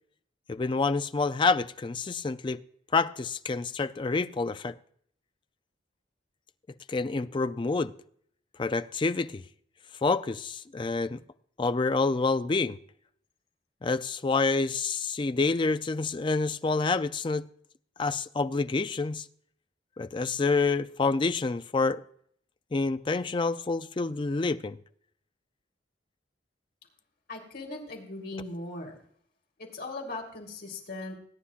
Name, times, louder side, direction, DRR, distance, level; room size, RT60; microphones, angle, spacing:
voice 1, 0.5-2.6 2.9-4.8 6.9-7.9 8.6-9.4 10.0-11.2 11.6-12.8 13.8-17.5 18.0-19.3 20.0-22.0 22.7-24.8, left 3 dB, 25° left, 0.4 m, -27 dB
voice 2, 27.3-29.0 29.6-31.2, left 2 dB, 60° left, 3.4 m, -39 dB
19.5 x 9.9 x 2.4 m
head